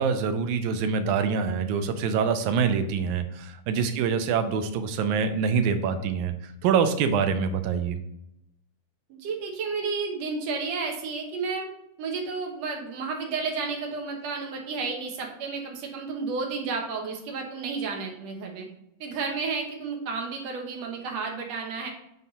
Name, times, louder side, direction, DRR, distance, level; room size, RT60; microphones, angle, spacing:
voice 1, 0.0-8.0, right 6 dB, 90° right, 9 dB, 2.1 m, -25 dB
voice 2, 9.1-11.7 12.0-18.7 19.0-21.9, right 4 dB, 65° right, 1 dB, 2.1 m, -32 dB
7.7 x 3.6 x 4.0 m, 0.80 s
omnidirectional pair, 3.3 m